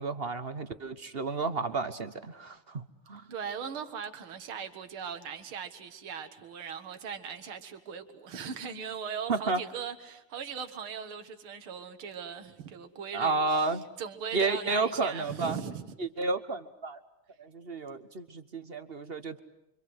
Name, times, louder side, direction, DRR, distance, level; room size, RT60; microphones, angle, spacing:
voice 1, 0.0-3.3 9.3-9.6 13.1-13.8 14.3-15.6 16.0-17.0 17.4-19.4, right 3 dB, 35° right, 1.0 m, -31 dB
voice 2, 3.3-13.4 14.0-15.9, right 7 dB, 75° right, 2.5 m, -39 dB
28.0 x 25.0 x 7.9 m
omnidirectional pair, 2.4 m